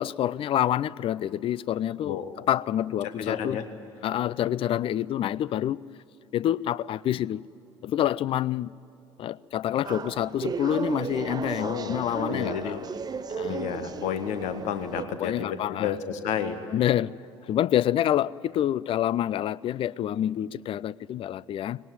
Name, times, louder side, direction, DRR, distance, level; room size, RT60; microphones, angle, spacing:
voice 1, 0.0-3.6 4.0-5.8 6.3-7.4 7.8-8.7 9.2-12.9 13.3-13.7 15.2-16.0 16.7-17.1 17.5-21.8, left 11 dB, 40° left, 22 dB, 0.5 m, -27 dB
voice 2, 3.2-3.6 11.6-12.0 12.3-12.8 13.5-16.6, left 8 dB, 55° left, 9 dB, 1.5 m, -31 dB
sound 1, 9.8-15.0, right 5 dB, 25° right, 0.9 m, -34 dB
20.5 x 18.0 x 9.4 m, 2.8 s
figure-of-eight pair, 60°, 15 cm